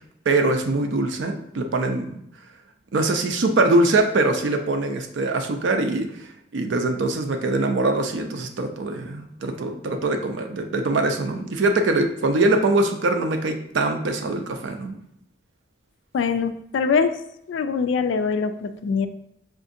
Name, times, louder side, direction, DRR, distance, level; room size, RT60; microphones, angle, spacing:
voice 1, 0.3-2.1 2.9-15.0, right 2 dB, 80° right, 5 dB, 0.5 m, -23 dB
voice 2, 16.1-17.2 17.5-19.1, left 5 dB, 80° left, 10 dB, 0.3 m, -23 dB
4.8 x 2.6 x 2.6 m, 0.76 s
head